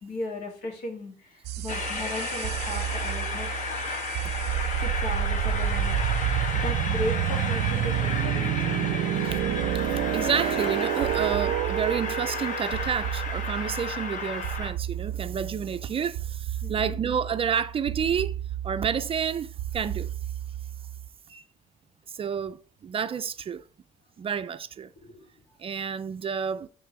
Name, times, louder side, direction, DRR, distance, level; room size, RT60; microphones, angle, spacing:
voice 1, 0.0-3.5 4.8-6.0 6.5-9.0 16.6-17.0 25.0-25.3, left 1 dB, 75° left, 2.3 m, -36 dB
sound 1, 1.4-21.1, right 11 dB, 85° right, 0.5 m, -30 dB
Train, 1.7-14.7, left 4 dB, 50° left, 1.3 m, -33 dB
voice 2, 9.7-18.4 18.6-20.1 21.3-21.4 22.1-23.6 24.2-24.9 25.6-26.7, right 7 dB, 35° right, 0.4 m, -30 dB
10.5 x 3.6 x 3.2 m
cardioid pair, 110°, 17 cm